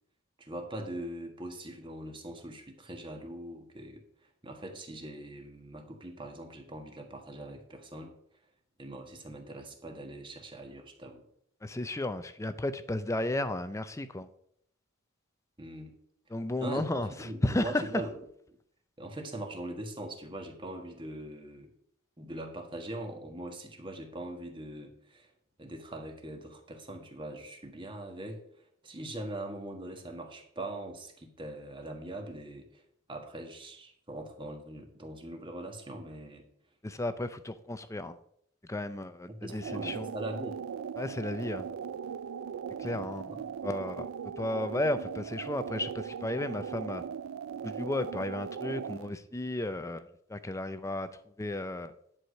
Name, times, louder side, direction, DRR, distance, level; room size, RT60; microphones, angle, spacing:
voice 1, 0.4-4.0 4.4-8.1 8.8-11.2 15.6-15.9 16.6-18.1 19.0-21.7 22.2-25.3 25.6-28.4 28.8-32.8 33.1-36.4 39.3-40.6 42.8-43.5, right 1 dB, 25° right, 3 dB, 1.5 m, -41 dB
voice 2, 11.6-14.3 16.3-17.8 36.8-38.2 38.7-40.1 41.0-41.7 42.8-43.3 43.6-44.1 44.4-47.0 47.6-51.1 51.4-51.9, left 1 dB, 15° left, 12 dB, 0.5 m, -33 dB
sound 1, 39.5-49.1, right 7 dB, 70° right, 0.4 m, -39 dB
10.5 x 4.8 x 6.5 m, 0.69 s
head